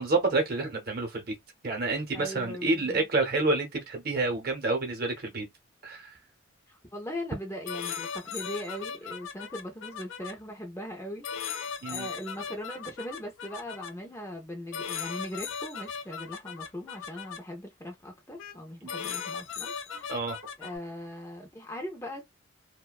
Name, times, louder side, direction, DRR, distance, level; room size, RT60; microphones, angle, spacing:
voice 1, 0.0-1.4 1.6-5.5 5.8-6.1 11.8-12.1 18.8-18.9 20.1-20.4, right 3 dB, 50° right, 0.8 m, -28 dB
voice 2, 2.1-3.1 6.7-20.2 20.6-22.2, equal, 15° left, 0.5 m, -40 dB
sound 1, 7.6-10.3 11.2-13.9 14.7-17.4 18.4-18.6 18.9-20.8, left 6 dB, 70° left, 0.4 m, -37 dB
2.5 x 2.2 x 2.3 m
head